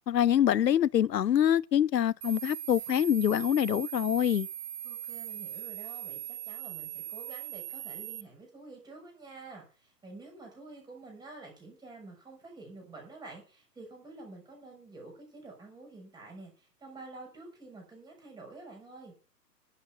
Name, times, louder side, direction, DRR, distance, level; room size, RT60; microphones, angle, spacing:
voice 1, 0.1-4.5, left 10 dB, 75° left, 0.7 m, -25 dB
sound 1, 2.2-8.2, right 11 dB, 45° right, 0.6 m, -40 dB
voice 2, 4.8-19.1, right 3 dB, 10° right, 6.6 m, -49 dB
11.5 x 8.5 x 7.1 m
figure-of-eight pair, 125°, 50 cm